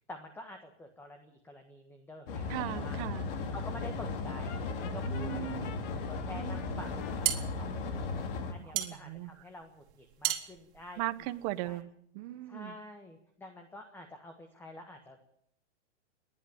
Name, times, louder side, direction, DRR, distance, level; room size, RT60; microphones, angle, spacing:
voice 1, 0.1-2.5 2.8-3.0 3.5-8.2 8.5-11.0 11.6-11.8 12.5-15.2, left 1 dB, 5° left, 5 dB, 1.5 m, -48 dB
sound 1, 2.3-8.5, left 3 dB, 50° left, 3.0 m, -36 dB
voice 2, 2.5-3.3 5.0-5.7 6.3-6.8 8.6-9.3 11.0-12.7, right 16 dB, 35° right, 13 dB, 1.1 m, -38 dB
Brass instrument, 4.5-7.2, left 8 dB, 25° left, 1.6 m, -50 dB
sound 2, 6.9-11.8, right 11 dB, 50° right, 2.7 m, -36 dB
28.0 x 11.0 x 8.8 m, 0.69 s
hypercardioid pair, 155°, 35 cm